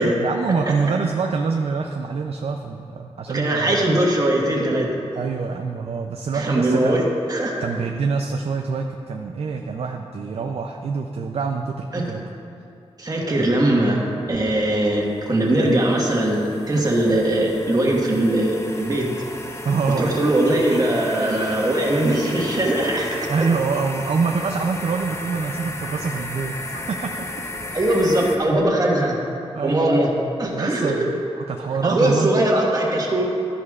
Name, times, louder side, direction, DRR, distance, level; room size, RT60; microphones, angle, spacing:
voice 1, 0.0-3.8 5.1-7.0 7.6-12.2 19.6-20.1 23.3-27.1 29.5-30.0 30.4-31.1 31.5-32.4, right 5 dB, 70° right, 3 dB, 0.5 m, -25 dB
voice 2, 3.3-4.9 6.3-7.6 11.9-12.1 13.0-14.0 14.3-19.1 20.0-23.3 27.7-29.2 29.6-30.1 30.4-31.1 31.8-33.2, right 1 dB, 35° right, -2 dB, 1.4 m, -20 dB
sound 1, 14.5-28.4, left 1 dB, 25° left, 0.8 m, -34 dB
12.5 x 11.0 x 2.4 m, 2.6 s
wide cardioid pair, 110°, 11 cm